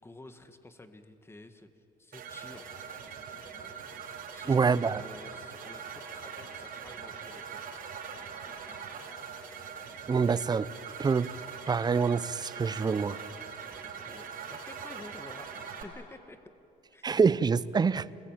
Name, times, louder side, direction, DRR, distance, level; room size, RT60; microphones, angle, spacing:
voice 1, 0.0-1.7 2.0-3.0 4.3-7.6 14.1-15.5 15.8-16.4 16.9-17.0, left 2 dB, 15° left, 8 dB, 1.8 m, -50 dB
sound 1, 2.1-15.8, right 6 dB, 60° right, 4.8 m, -42 dB
voice 2, 4.5-5.0 10.1-10.7 11.0-11.3 11.7-13.2 17.0-18.1, right 5 dB, 25° right, 17 dB, 0.7 m, -26 dB
28.5 x 21.5 x 9.1 m, 2.8 s
cardioid pair, 110°, 17 cm